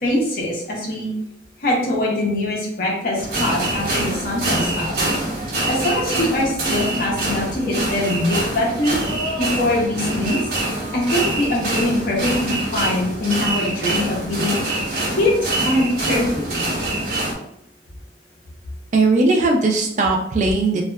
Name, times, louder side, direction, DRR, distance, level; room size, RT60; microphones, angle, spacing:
voice 1, 0.0-1.1 1.6-4.9 5.7-9.0 9.4-10.4 10.9-14.6 15.1-16.6, left 1 dB, 50° left, -3 dB, 0.6 m, -22 dB
sound 1, 3.2-17.3, right 1 dB, 55° right, 0.8 m, -25 dB
voice 2, 18.9-20.8, right 3 dB, 40° right, 0 dB, 0.3 m, -18 dB
2.7 x 2.2 x 2.3 m, 0.76 s
head